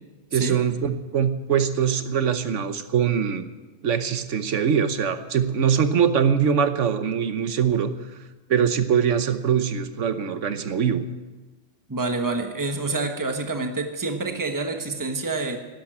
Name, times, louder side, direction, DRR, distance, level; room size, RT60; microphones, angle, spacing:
voice 1, 0.3-3.5 3.8-7.9 8.5-11.0, right 7 dB, 70° right, 10 dB, 1.3 m, -22 dB
voice 2, 11.9-15.6, right 3 dB, 15° right, 5 dB, 1.2 m, -27 dB
12.0 x 11.5 x 9.0 m, 1.2 s
omnidirectional pair, 1.3 m